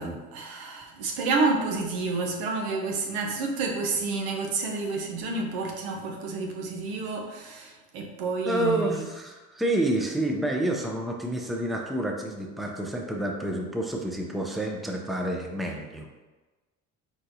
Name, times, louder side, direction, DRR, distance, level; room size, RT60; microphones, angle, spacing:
voice 1, 0.0-9.1, right 3 dB, 85° right, 1 dB, 0.9 m, -29 dB
voice 2, 8.5-16.1, right 1 dB, ahead, 1 dB, 0.5 m, -29 dB
4.5 x 4.1 x 2.6 m, 1.2 s
cardioid pair, 105°, 36 cm